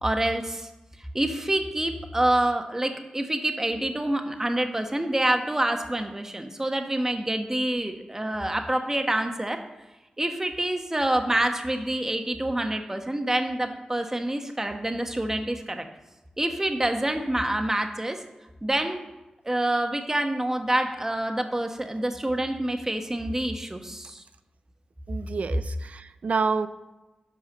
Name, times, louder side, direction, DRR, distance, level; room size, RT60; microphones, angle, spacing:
voice 1, 0.0-0.7 1.1-9.6 10.2-15.8 16.4-18.2 18.6-19.0 19.4-24.2, right 1 dB, 20° right, 5 dB, 1.2 m, -27 dB
voice 2, 25.1-26.7, right 4 dB, 65° right, 12 dB, 0.6 m, -28 dB
11.5 x 4.7 x 6.6 m, 1.0 s
cardioid pair, 65°, 3 cm